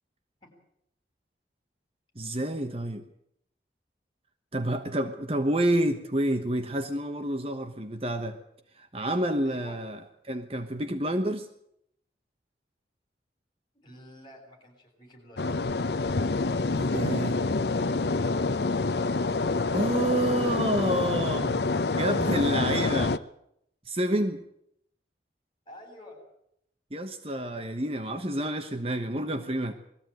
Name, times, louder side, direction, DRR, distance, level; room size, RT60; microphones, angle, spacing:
voice 1, 2.2-3.0 4.5-8.4 8.9-10.0 10.3-11.5 16.8-17.4 19.7-21.6 22.0-23.1 23.9-24.4 26.9-29.7, right 1 dB, 35° right, 7 dB, 1.2 m, -28 dB
voice 2, 9.4-9.8 13.7-15.7 22.6-23.1 25.7-26.2, left 1 dB, 25° left, 1 dB, 7.7 m, -49 dB
sound 1, 15.4-23.2, left 3 dB, 70° left, 0.7 m, -27 dB
21.0 x 15.0 x 9.2 m, 0.75 s
head